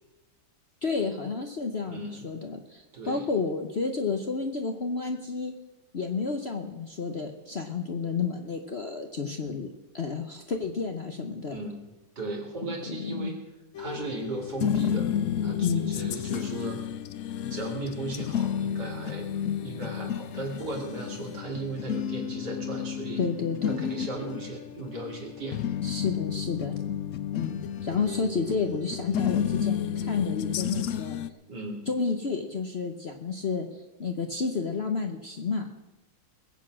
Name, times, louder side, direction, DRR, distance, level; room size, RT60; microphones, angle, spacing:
voice 1, 0.8-5.5 5.9-9.7 9.9-11.6 12.6-13.3 15.6-15.9 23.2-23.8 25.8-26.7 27.3-31.2 31.9-35.7, left 4 dB, 45° left, 4 dB, 1.0 m, -31 dB
voice 2, 1.9-2.3 2.9-3.3 11.5-13.4 13.8-15.1 15.4-16.8 17.5-19.3 19.6-23.2 23.7-25.6 31.5-31.8, right 2 dB, 60° right, 0 dB, 3.4 m, -36 dB
sound 1, 13.8-31.3, left 8 dB, 70° left, 0.7 m, -31 dB
21.0 x 8.3 x 6.3 m, 1.0 s
omnidirectional pair, 2.0 m